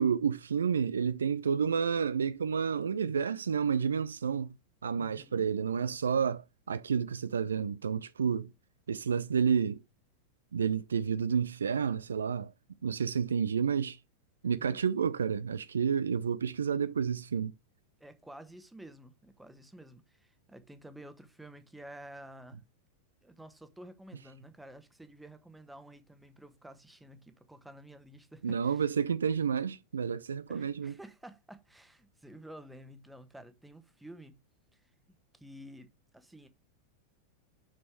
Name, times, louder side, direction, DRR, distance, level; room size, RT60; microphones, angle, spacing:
voice 1, 0.0-4.5 4.8-8.5 8.9-9.8 10.5-12.5 12.8-14.0 14.4-17.5 28.4-30.9, right 6 dB, 70° right, 0.4 m, -30 dB
voice 2, 5.0-5.5 14.4-14.8 18.0-22.6 23.2-28.8 30.5-34.4 34.7-34.8 35.3-36.5, right 1 dB, 5° right, 1.2 m, -51 dB
6.3 x 6.0 x 4.8 m
figure-of-eight pair, 90°, 0 cm